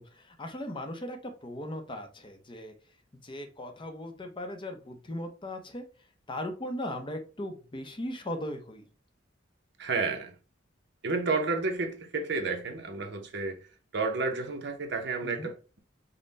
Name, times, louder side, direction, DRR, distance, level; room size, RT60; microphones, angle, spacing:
voice 1, 0.2-2.7 3.2-5.8 6.3-8.8 15.2-15.5, left 1 dB, 25° left, 0.7 m, -38 dB
voice 2, 9.8-10.3 11.0-13.6 13.9-15.8, right 3 dB, 65° right, 0.8 m, -31 dB
5.3 x 2.2 x 4.0 m
head